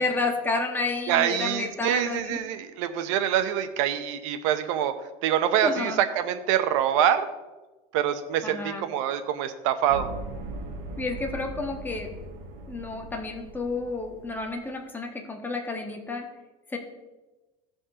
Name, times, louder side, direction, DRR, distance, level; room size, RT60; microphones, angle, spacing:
voice 1, 0.0-2.4 5.6-6.0 8.4-8.9 11.0-12.1 12.7-16.3 16.7-16.8, left 3 dB, 10° left, 2 dB, 1.3 m, -30 dB
voice 2, 1.1-4.9 5.2-7.3 7.9-10.1, right 10 dB, 85° right, 9 dB, 0.8 m, -25 dB
sound 1, 9.9-14.7, right 2 dB, 70° right, 2.4 m, -39 dB
15.5 x 5.3 x 3.7 m, 1.1 s
supercardioid pair, 125°, 16 cm